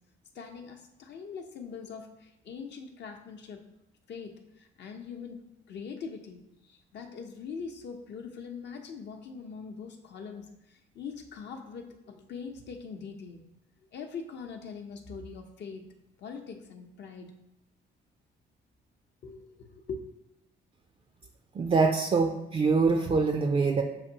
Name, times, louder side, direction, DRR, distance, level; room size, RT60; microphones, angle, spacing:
voice 1, 0.3-3.6 4.1-13.4 13.9-15.9 16.2-17.3 19.2-20.0, left 5 dB, 60° left, 4 dB, 0.8 m, -42 dB
voice 2, 21.5-23.8, right 4 dB, 30° right, 4 dB, 0.4 m, -24 dB
6.5 x 2.6 x 2.9 m, 0.91 s
supercardioid pair, 75°, 20 cm